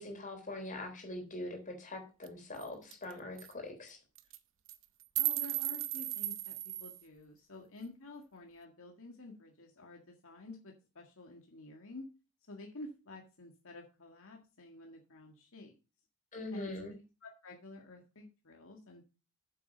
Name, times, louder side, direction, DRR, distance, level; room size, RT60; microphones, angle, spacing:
voice 1, 0.0-4.0 16.3-16.9, left 1 dB, 35° left, 4 dB, 3.6 m, -43 dB
sound 1, 2.2-2.3 2.6-2.7 2.9-3.1 3.4-3.5 4.2-4.4 4.7-7.0, right 15 dB, 65° right, 0.8 m, -35 dB
voice 2, 5.2-12.1 12.5-15.7 16.5-16.7 17.2-19.1, left 2 dB, 65° left, 2 dB, 1.9 m, -50 dB
8.7 x 7.5 x 5.2 m, 0.31 s
head